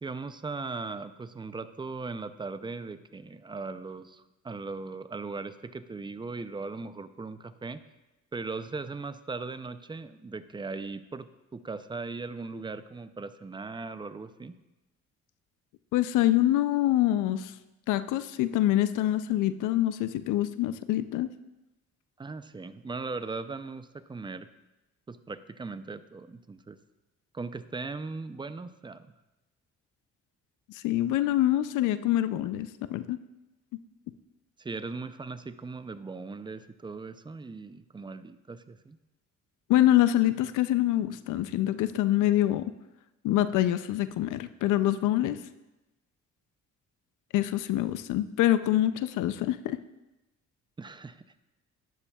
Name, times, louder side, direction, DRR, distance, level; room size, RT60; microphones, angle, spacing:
voice 1, 0.0-7.8 8.3-14.6 22.2-24.5 25.1-26.8 27.3-29.1 34.6-39.0 50.8-51.2, right 4 dB, 15° right, 12 dB, 0.5 m, -38 dB
voice 2, 15.9-17.5 17.9-21.3 30.7-33.2 39.7-42.7 43.2-45.4 47.3-49.8, left 13 dB, 90° left, 12 dB, 0.5 m, -25 dB
12.0 x 9.9 x 2.3 m, 1.0 s
cardioid pair, 90°, 30 cm